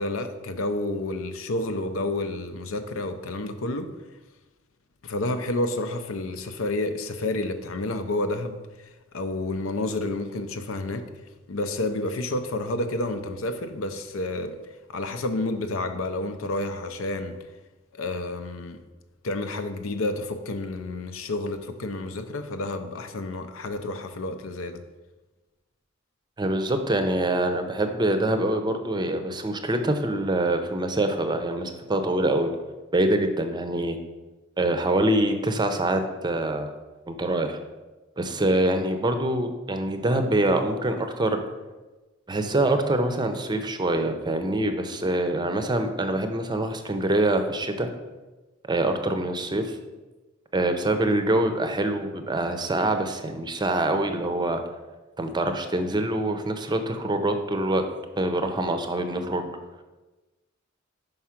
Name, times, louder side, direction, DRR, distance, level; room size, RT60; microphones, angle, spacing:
voice 1, 0.0-3.9 5.0-8.6 9.1-11.1 11.5-14.6 14.9-17.4 17.9-18.8 19.2-24.8, left 2 dB, 75° left, 0.6 m, -30 dB
voice 2, 26.4-32.5 32.9-34.0 34.6-36.7 37.1-37.6 38.2-41.4 42.3-47.9 48.7-49.8 50.5-54.6 55.2-57.8 58.2-59.5, right 1 dB, 20° right, 0.6 m, -25 dB
5.4 x 4.8 x 5.8 m
head